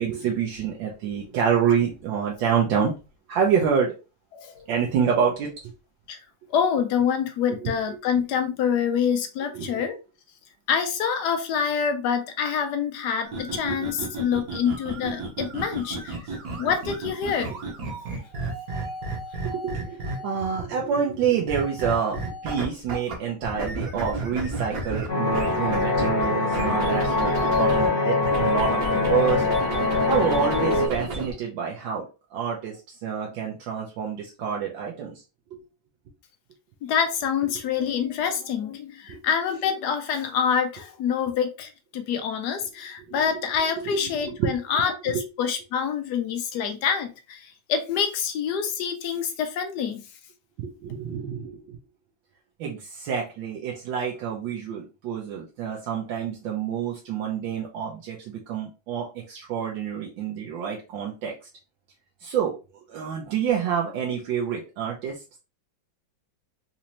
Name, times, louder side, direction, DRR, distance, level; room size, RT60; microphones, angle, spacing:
voice 1, 0.0-2.9 3.3-3.9 4.7-5.5 7.6-7.7 9.5-9.9 13.7-14.1 17.5-17.6 19.4-28.8 29.1-29.4 30.1-35.2 35.5-35.6 39.1-39.2 43.1-43.6 43.8-44.0 44.3-45.3 50.6-51.8 52.6-61.3 62.2-62.6 62.9-65.2, right 7 dB, 75° right, -2 dB, 1.3 m, -27 dB
voice 2, 4.3-4.6 6.1-6.2 6.5-10.0 10.7-16.2 16.6-17.5 36.8-50.0, left 7 dB, 75° left, 7 dB, 0.9 m, -26 dB
sound 1, 13.2-20.4 21.5-23.1 23.4-27.9 28.2-31.3, right 2 dB, 55° right, 1.2 m, -32 dB
sound 2, 25.1-30.9, left 3 dB, 45° left, 0.8 m, -23 dB
4.1 x 2.6 x 2.8 m, 0.31 s
omnidirectional pair, 2.1 m